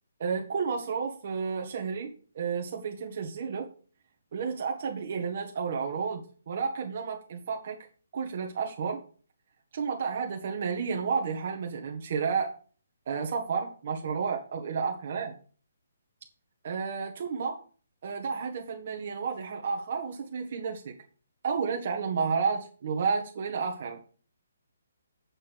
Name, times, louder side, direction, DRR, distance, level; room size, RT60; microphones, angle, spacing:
voice 1, 0.2-3.7 4.3-7.8 8.1-9.0 9.7-12.5 13.1-15.3 16.6-17.6 18.0-20.9 21.4-24.0, right 5 dB, 35° right, 1 dB, 1.4 m, -31 dB
8.5 x 5.4 x 6.0 m, 0.40 s
hypercardioid pair, 180°, 0 cm